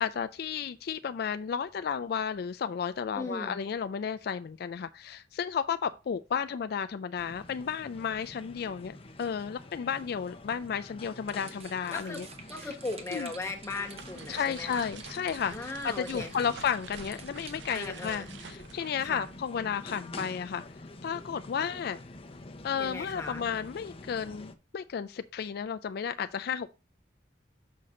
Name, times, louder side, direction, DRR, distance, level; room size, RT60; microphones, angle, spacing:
voice 1, 0.0-12.3 12.6-12.7 13.1-13.3 14.3-20.6 21.0-22.0 22.6-26.7, left 7 dB, 60° left, 0.3 m, -33 dB
voice 2, 3.1-3.5 11.9-12.2 12.5-14.9 15.5-16.5 17.7-18.3 19.0-19.3 22.8-23.5, left 3 dB, 15° left, 1.4 m, -38 dB
sound 1, 7.2-24.5, left 2 dB, 30° left, 0.7 m, -47 dB
sound 2, 11.2-18.3, right 5 dB, 35° right, 1.0 m, -51 dB
sound 3, 13.5-19.8, right 5 dB, 85° right, 0.7 m, -49 dB
6.4 x 5.9 x 3.7 m
head